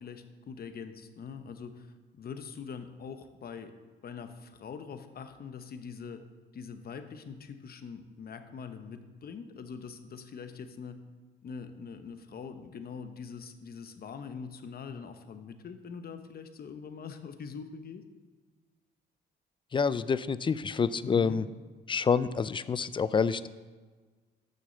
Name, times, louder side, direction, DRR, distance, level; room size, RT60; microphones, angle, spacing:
voice 1, 0.0-3.7 4.0-6.2 6.5-11.0 11.4-18.0 21.0-21.4, left 6 dB, 50° left, 9 dB, 0.9 m, -43 dB
voice 2, 19.7-21.5 21.9-23.5, left 5 dB, 25° left, 16 dB, 0.4 m, -27 dB
6.8 x 6.3 x 6.7 m, 1.4 s
cardioid pair, 90°, 20 cm